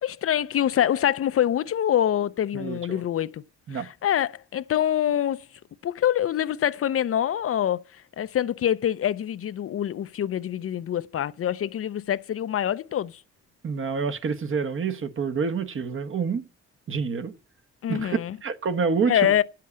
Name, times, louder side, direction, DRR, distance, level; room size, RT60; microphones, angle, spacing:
voice 1, 0.0-3.4 3.7-5.4 5.8-13.2 17.8-18.4 19.1-19.4, left 10 dB, 50° left, 0.6 m, -25 dB
voice 2, 2.5-3.0 3.7-3.9 13.6-16.4 16.9-17.3 17.9-19.3, right 5 dB, 45° right, 1.1 m, -27 dB
8.3 x 7.6 x 8.5 m
cardioid pair, 90°, 30 cm